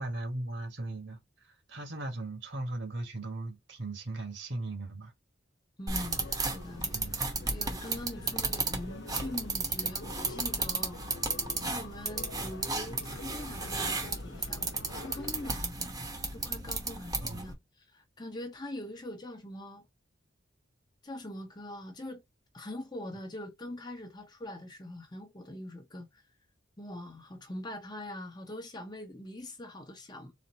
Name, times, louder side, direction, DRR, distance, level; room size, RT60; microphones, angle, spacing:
voice 1, 0.0-5.1 6.9-7.2 17.2-17.5, right 2 dB, 65° right, 1.5 m, -38 dB
voice 2, 5.8-7.0 7.4-11.2 11.6-16.0 16.3-19.8 21.0-22.2 22.5-26.2 26.8-30.3, left 1 dB, 20° left, 0.9 m, -43 dB
sound 1, 5.9-17.5, right 3 dB, 20° right, 0.9 m, -34 dB
sound 2, 6.0-15.5, left 4 dB, 65° left, 0.6 m, -49 dB
4.2 x 2.7 x 3.9 m
head